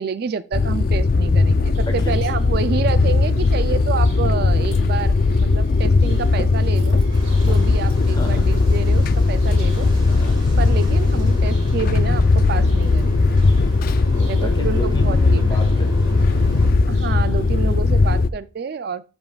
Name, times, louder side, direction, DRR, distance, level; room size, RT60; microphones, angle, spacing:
voice 1, 0.0-5.1 5.4-7.0 7.4-9.9 10.6-13.4 14.3-15.6 16.9-19.1, right 5 dB, 50° right, 0.3 m, -28 dB
sound 1, 0.5-18.3, left 3 dB, 45° left, 0.4 m, -18 dB
Bird vocalization bird call bird song, 1.7-17.7, equal, 70° right, 2.7 m, -40 dB
sound 2, 7.1-16.7, equal, 25° right, 2.1 m, -33 dB
voice 2, 8.1-8.5 10.1-10.4 14.1-16.2 17.6-17.7, equal, 20° left, 1.6 m, -32 dB
12.5 x 5.4 x 2.3 m
head